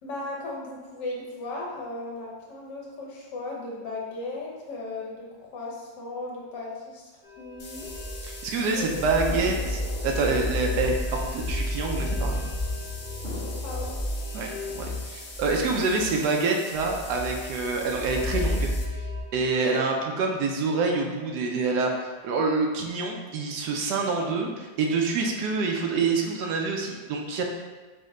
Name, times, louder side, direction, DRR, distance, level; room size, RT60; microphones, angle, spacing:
voice 1, 0.0-7.1 7.4-7.8 8.7-9.0 9.4-9.5 13.6-14.0, left 2 dB, 80° left, -3 dB, 1.6 m, -36 dB
sound 1, 7.2-19.2, left 1 dB, 25° left, 1.0 m, -32 dB
sound 2, 7.6-18.8, left 3 dB, 60° left, 0.6 m, -43 dB
voice 2, 8.2-12.5 14.3-18.7 19.3-27.4, right 4 dB, 75° right, 1 dB, 1.1 m, -27 dB
sound 3, 9.3-12.3 12.6-12.7 13.2-16.2 16.6-17.2, right 1 dB, 55° right, 0.8 m, -44 dB
5.1 x 2.1 x 3.6 m, 1.3 s
omnidirectional pair, 1.9 m